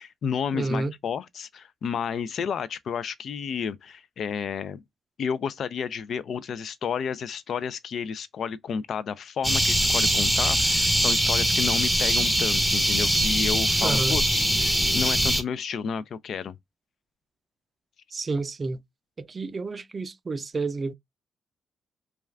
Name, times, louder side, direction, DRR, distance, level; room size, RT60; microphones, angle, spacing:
voice 1, 0.0-4.8 5.2-16.6, left 7 dB, 65° left, 0.3 m, -31 dB
voice 2, 0.5-0.9 13.8-14.2 18.1-18.8 19.2-20.9, right 3 dB, 35° right, 0.4 m, -30 dB
sound 1, 9.4-15.4, equal, ahead, 0.7 m, -22 dB
2.3 x 2.3 x 3.2 m
cardioid pair, 100°, 0 cm